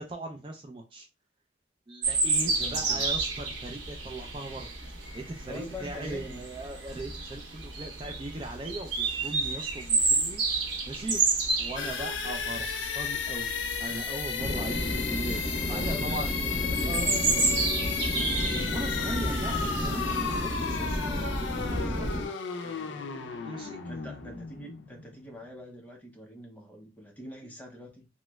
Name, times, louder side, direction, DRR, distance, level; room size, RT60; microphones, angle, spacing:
voice 1, 0.1-1.1 1.9-4.7 5.1-10.4 10.9-16.3 16.8-17.6 18.1-21.0 21.5-22.3 23.4-23.8 27.4-27.5, right 2 dB, 25° right, 2 dB, 0.3 m, -39 dB
sound 1, 2.0-21.8, right 3 dB, 80° right, 0.9 m, -32 dB
voice 2, 2.5-3.1 5.5-6.5 15.7-17.7 22.6-23.0 23.9-28.1, left 1 dB, 10° left, 0 dB, 0.6 m, -44 dB
sound 2, 11.8-25.5, left 6 dB, 70° left, 0.5 m, -34 dB
sound 3, 14.4-22.3, left 1 dB, 30° left, 1.1 m, -32 dB
3.1 x 3.0 x 2.2 m, 0.28 s
head